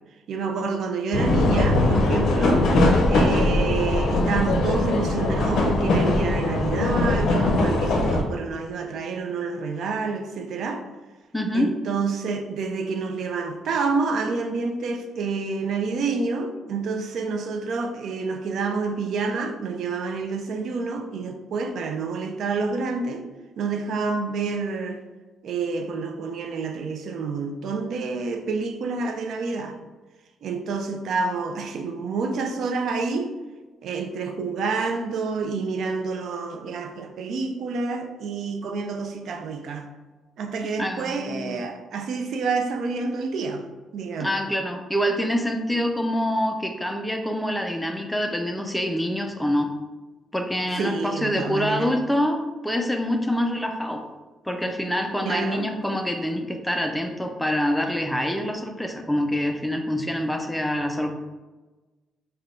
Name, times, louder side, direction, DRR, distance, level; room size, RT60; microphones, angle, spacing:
voice 1, 0.3-2.7 3.1-10.8 11.5-23.3 23.6-25.0 25.4-29.8 30.4-33.3 33.8-39.9 40.4-43.6 43.9-44.3 45.7-45.8 50.7-51.9 55.2-55.7, right 4 dB, 70° right, 5 dB, 0.4 m, -28 dB
sound 1, 1.1-8.2, left 2 dB, 70° left, 0.5 m, -21 dB
voice 2, 11.3-11.7 40.8-41.6 44.2-49.7 50.3-54.0 54.5-61.1, equal, 5° left, 4 dB, 0.4 m, -26 dB
3.4 x 2.2 x 3.6 m, 1.2 s
cardioid pair, 90°, 0 cm